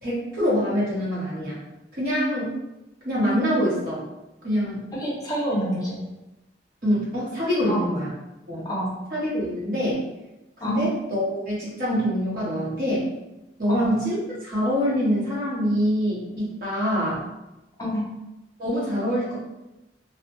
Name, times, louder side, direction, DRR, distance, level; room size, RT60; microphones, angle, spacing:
voice 1, 0.0-1.6 1.9-2.6 3.0-4.0 4.4-4.9 6.8-8.1 8.5-8.7 9.1-10.0 10.6-13.0 13.6-17.2 18.6-19.4, equal, 50° right, -8 dB, 1.1 m, -25 dB
voice 2, 4.9-6.0 7.7-7.9 8.7-8.9 10.6-10.8 13.7-13.9 17.8-18.1, equal, 20° left, -5 dB, 0.6 m, -27 dB
2.4 x 2.1 x 2.8 m, 0.96 s
head